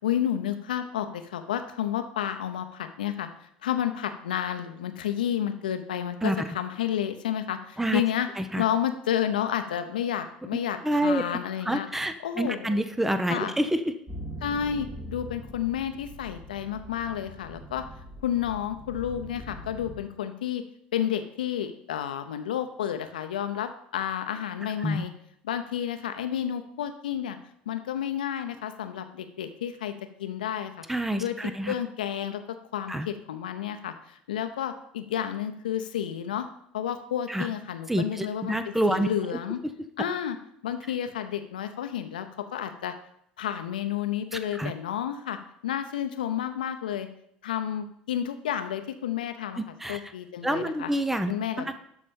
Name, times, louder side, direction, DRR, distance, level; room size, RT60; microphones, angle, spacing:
voice 1, 0.0-3.3 3.6-8.3 8.6-11.9 12.2-12.9 13.3-13.5 14.4-17.8 18.2-20.6 20.9-25.1 25.4-27.4 27.7-29.9 30.2-30.8 31.2-31.4 31.7-33.9 34.3-36.5 36.7-39.6 40.0-40.4 40.6-42.3 42.5-42.9 43.4-45.4 45.6-47.1 47.4-49.6 49.9-50.9 51.3-51.8, left 10 dB, 75° left, 8 dB, 0.8 m, -31 dB
voice 2, 10.8-11.2 11.7-13.9 24.8-25.0 30.9-31.7 32.9-33.1 37.3-37.5 37.9-39.1 44.3-44.7 49.6-50.1 50.4-51.3 51.6-51.7, right 1 dB, 5° right, 10 dB, 0.7 m, -27 dB
sound 1, 14.1-20.0, equal, 25° right, 2.5 m, -42 dB
12.0 x 4.3 x 5.3 m, 0.71 s
figure-of-eight pair, 65°, 5 cm